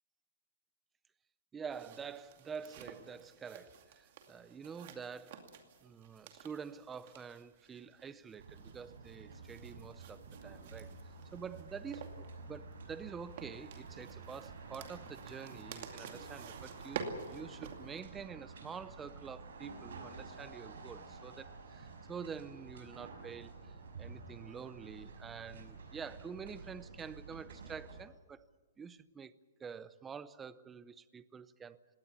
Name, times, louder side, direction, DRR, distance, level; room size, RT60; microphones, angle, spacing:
voice 1, 1.5-5.5 5.8-10.9 11.3-28.5 28.8-29.3 29.6-31.8, right 6 dB, 10° right, 0.6 m, -47 dB
sound 1, 1.7-18.0, right 6 dB, 45° right, 2.4 m, -50 dB
sound 2, 8.4-28.0, right 4 dB, 75° right, 6.0 m, -50 dB
20.5 x 17.5 x 9.6 m
hypercardioid pair, 170°, 0 cm